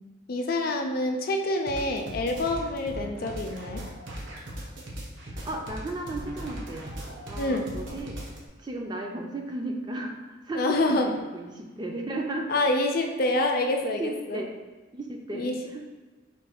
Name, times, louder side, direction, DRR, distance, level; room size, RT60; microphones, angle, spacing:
voice 1, 0.3-3.8 7.4-7.7 10.5-11.1 12.5-14.4 15.3-15.6, left 2 dB, 50° left, 3 dB, 0.5 m, -27 dB
sound 1, 1.7-8.5, equal, 80° right, 0.9 m, -38 dB
voice 2, 5.3-6.8 7.3-8.2 8.6-12.5 13.8-14.5 14.9-15.9, right 2 dB, 20° right, 2 dB, 0.4 m, -35 dB
4.5 x 2.3 x 4.3 m, 1.3 s
head